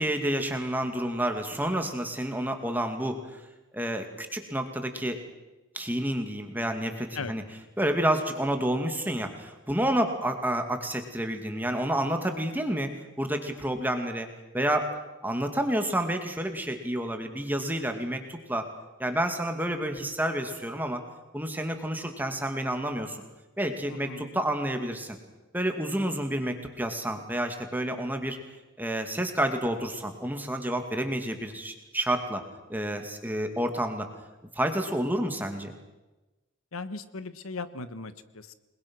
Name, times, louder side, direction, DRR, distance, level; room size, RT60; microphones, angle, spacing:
voice 1, 0.0-3.4 3.7-5.2 5.7-7.4 7.8-12.9 13.2-14.3 14.5-14.9 15.2-18.7 19.0-21.0 21.3-23.2 23.6-25.2 25.5-28.4 28.8-32.4 32.7-34.1 34.5-35.7, right 1 dB, 10° right, 5 dB, 2.3 m, -29 dB
voice 2, 23.9-24.3 36.7-38.5, left 3 dB, 90° left, 12 dB, 1.4 m, -38 dB
29.0 x 21.0 x 6.3 m, 1.1 s
head